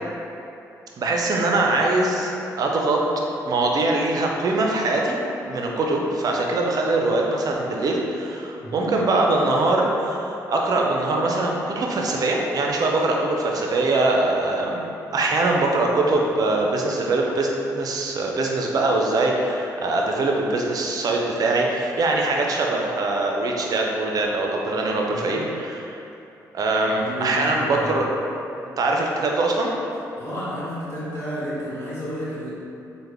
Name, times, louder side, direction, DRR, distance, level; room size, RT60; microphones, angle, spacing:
voice 1, 1.0-2.3 2.6-3.0 3.5-5.2 5.5-17.5 17.7-26.0 26.5-28.1 28.8-29.7, right 2 dB, 55° right, 0 dB, 0.5 m, -22 dB
voice 2, 8.6-9.0 25.0-25.5 26.9-28.1 30.2-32.5, equal, 30° left, -9 dB, 1.3 m, -32 dB
3.4 x 2.2 x 3.3 m, 2.8 s
supercardioid pair, 55°, 8 cm